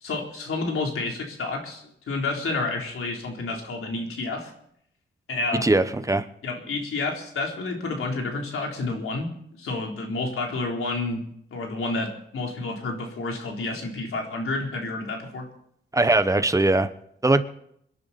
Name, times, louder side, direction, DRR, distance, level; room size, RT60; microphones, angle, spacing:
voice 1, 0.0-4.5 5.3-5.8 6.4-9.3 9.6-11.2 11.5-15.5, left 3 dB, 90° left, 1 dB, 3.7 m, -30 dB
voice 2, 5.5-6.3 15.9-16.9 17.2-17.4, right 2 dB, 15° right, 11 dB, 1.0 m, -20 dB
26.5 x 11.0 x 4.3 m, 0.71 s
wide cardioid pair, 125°, 21 cm